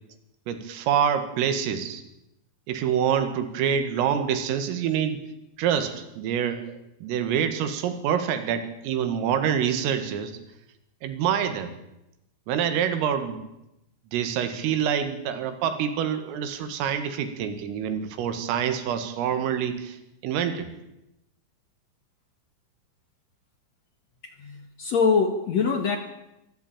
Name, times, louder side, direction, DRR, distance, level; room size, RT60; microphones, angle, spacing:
voice 1, 0.5-2.0 2.7-5.2 5.6-10.4 11.0-11.7 12.5-13.4 14.1-20.0 20.2-20.7, right 8 dB, 85° right, 9 dB, 4.6 m, -26 dB
voice 2, 24.4-26.0, left 5 dB, 65° left, 6 dB, 1.7 m, -23 dB
25.0 x 15.0 x 9.0 m, 0.90 s
omnidirectional pair, 5.8 m